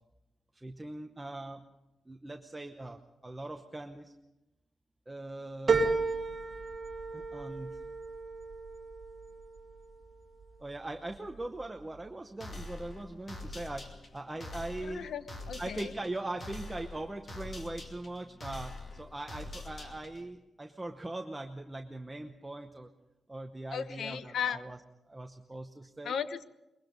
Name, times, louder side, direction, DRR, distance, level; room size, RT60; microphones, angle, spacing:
voice 1, 0.5-1.6 2.1-4.1 5.1-5.9 7.1-7.8 10.6-15.1 15.6-22.9 23.3-24.8 25.1-26.1, right 2 dB, 15° right, 4 dB, 0.9 m, -41 dB
sound 1, 5.7-10.4 10.9-11.6 12.0-12.1, right 4 dB, 35° right, 2.0 m, -33 dB
sound 2, 12.4-20.3, left 2 dB, 30° left, 2.6 m, -45 dB
voice 2, 14.8-15.9 23.7-24.6 26.0-26.4, left 8 dB, 80° left, 12 dB, 1.0 m, -36 dB
23.0 x 22.0 x 5.3 m, 0.97 s
wide cardioid pair, 165°, 0 cm